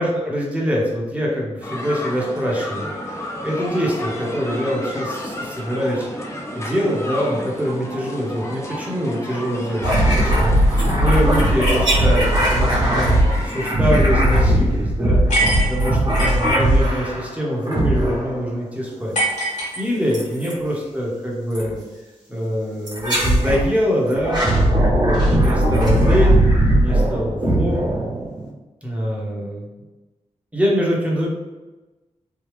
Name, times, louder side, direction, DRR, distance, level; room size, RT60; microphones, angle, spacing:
voice 1, 0.0-13.1 13.4-19.2 19.8-21.8 22.3-26.4 26.7-27.9 28.8-29.7 30.5-31.3, equal, 10° right, -3 dB, 1.1 m, -24 dB
sound 1, 1.6-13.7, left 1 dB, 25° left, 0.7 m, -31 dB
sound 2, 9.8-17.3 17.7-18.4 20.1-20.6 21.6-21.7 22.9-23.7 24.1-28.5, right 1 dB, 35° right, 1.3 m, -18 dB
sound 3, 15.3-16.5 19.1-20.3, right 1 dB, 85° left, 1.3 m, -23 dB
3.4 x 2.3 x 3.3 m, 1.1 s
cardioid pair, 65°, 13 cm